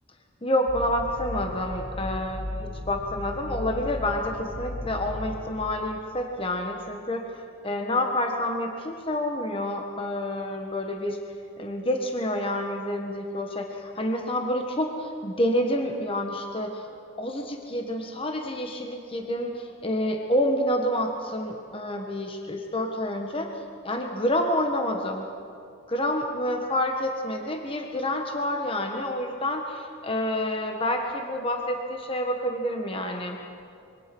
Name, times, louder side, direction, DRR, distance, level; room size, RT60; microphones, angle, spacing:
voice 1, 0.4-7.3 7.6-11.2 11.6-16.9 17.2-23.5 23.8-25.2 25.9-33.4, left 1 dB, 25° left, 3 dB, 1.5 m, -28 dB
sound 1, 0.7-5.8, left 1 dB, 45° left, 2.2 m, -36 dB
25.5 x 23.0 x 6.2 m, 2.4 s
head